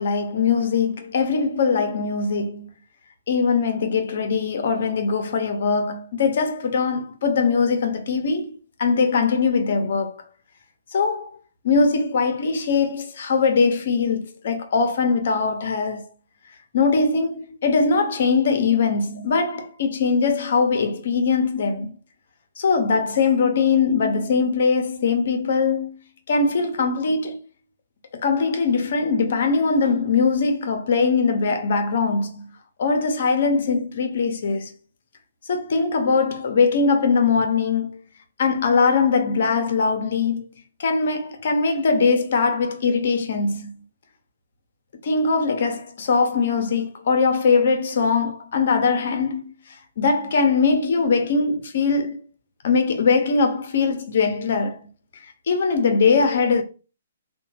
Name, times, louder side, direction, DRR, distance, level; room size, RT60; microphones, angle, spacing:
voice 1, 0.0-2.7 3.3-10.1 10.9-11.3 11.6-16.1 16.7-22.0 22.6-25.9 26.3-27.4 28.2-32.5 32.8-34.7 35.5-38.0 38.4-40.5 40.8-43.7 45.0-49.4 50.0-52.2 52.6-54.9 55.5-56.6, left 4 dB, 60° left, 0.7 m, -21 dB
2.9 x 2.2 x 2.8 m
figure-of-eight pair, 130°, 0 cm